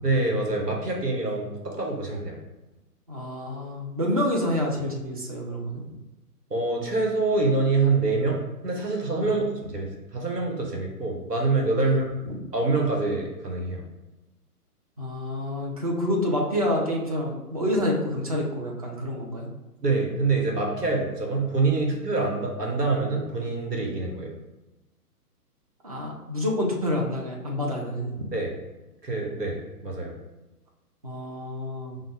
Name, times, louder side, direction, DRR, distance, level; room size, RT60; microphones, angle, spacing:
voice 1, 0.0-2.4 6.5-9.4 9.7-9.9 10.1-12.0 12.5-13.8 19.8-24.4 28.3-28.5 29.0-30.2, right 3 dB, 80° right, 0 dB, 1.2 m, -25 dB
voice 2, 3.1-5.8 9.2-9.4 11.8-11.9 12.3-12.4 15.0-19.5 25.8-28.3 31.0-32.0, left 1 dB, 25° right, -2 dB, 0.5 m, -28 dB
5.3 x 2.1 x 3.4 m, 1.1 s
figure-of-eight pair, 125°, 47 cm